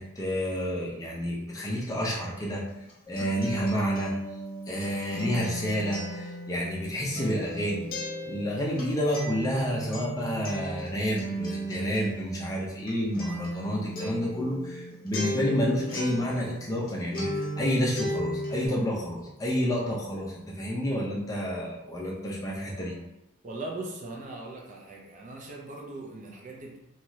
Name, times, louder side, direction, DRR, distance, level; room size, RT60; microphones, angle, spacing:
voice 1, 0.0-2.6 3.1-4.1 4.7-7.8 8.3-23.0, equal, 15° left, -4 dB, 0.5 m, -30 dB
Acoustic guitar, 2.7-16.9 17.1-18.7, right 1 dB, 40° left, 0.8 m, -35 dB
voice 2, 23.4-26.8, right 2 dB, 35° right, -1 dB, 0.5 m, -39 dB
2.7 x 2.3 x 3.0 m, 0.91 s
head